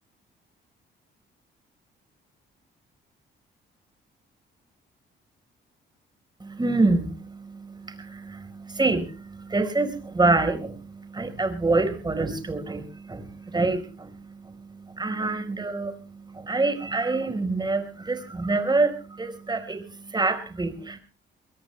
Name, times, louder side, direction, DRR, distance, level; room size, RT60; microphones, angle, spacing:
voice 1, 6.4-21.0, right 3 dB, 20° right, 9 dB, 4.5 m, -27 dB
23.0 x 23.0 x 2.2 m, 0.35 s
cardioid pair, 90°, 20 cm